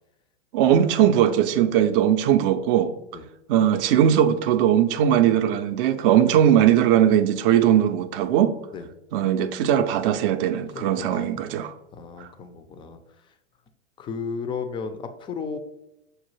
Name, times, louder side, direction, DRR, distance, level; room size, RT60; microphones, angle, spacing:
voice 1, 0.5-2.9 3.5-8.6 9.1-11.7 12.2-12.3, right 10 dB, 55° right, 0.5 m, -19 dB
voice 2, 10.7-11.3 11.9-13.0 14.0-15.6, left 5 dB, 15° left, 0.3 m, -34 dB
6.4 x 2.3 x 3.0 m
hypercardioid pair, 105°, 34 cm